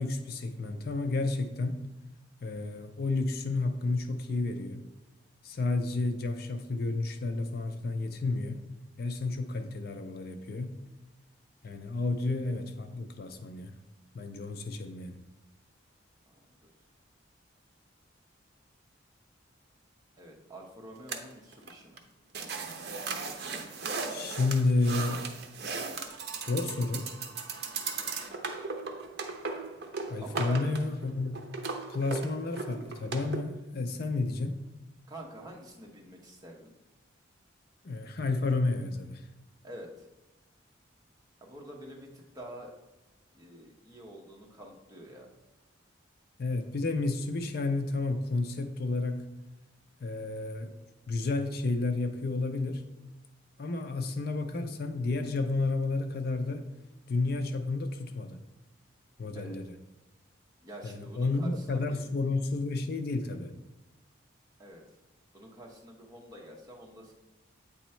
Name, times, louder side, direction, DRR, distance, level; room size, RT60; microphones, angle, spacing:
voice 1, 0.0-1.8 2.4-4.9 5.4-8.6 9.0-10.8 11.6-13.7 14.1-15.2 24.1-25.3 25.9-27.1 30.1-31.4 31.9-34.6 37.8-39.2 46.4-49.3 50.0-50.7 51.1-52.8 53.6-56.7 57.1-58.4 59.2-59.7 60.8-63.5, left 3 dB, 50° left, 7 dB, 0.4 m, -31 dB
voice 2, 16.3-16.7 20.2-22.0 30.2-30.6 35.1-36.7 39.6-40.1 41.4-42.7 43.3-45.3 59.3-59.6 60.6-62.0 64.6-64.8 65.3-67.1, right 1 dB, 20° right, -1 dB, 0.9 m, -47 dB
sound 1, 21.1-21.7 22.0-22.1 22.3-33.4, right 4 dB, 50° right, 0.7 m, -37 dB
8.5 x 3.0 x 4.3 m, 1.1 s
head